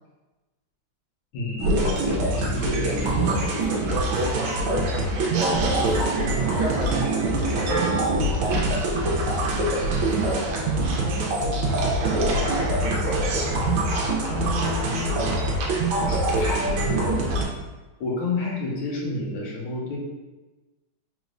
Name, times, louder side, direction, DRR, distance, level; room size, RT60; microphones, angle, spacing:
voice 1, 1.3-4.1 4.4-4.5 14.3-15.2 15.9-17.2 18.0-20.0, left 2 dB, 85° left, -2 dB, 1.7 m, -30 dB
sound 1, 1.6-17.4, right 2 dB, 90° right, 1.5 m, -24 dB
voice 2, 5.6-8.9 9.9-11.8 12.2-13.6, right 2 dB, 40° right, -11 dB, 1.3 m, -38 dB
4.3 x 3.2 x 2.5 m, 1.2 s
omnidirectional pair, 2.2 m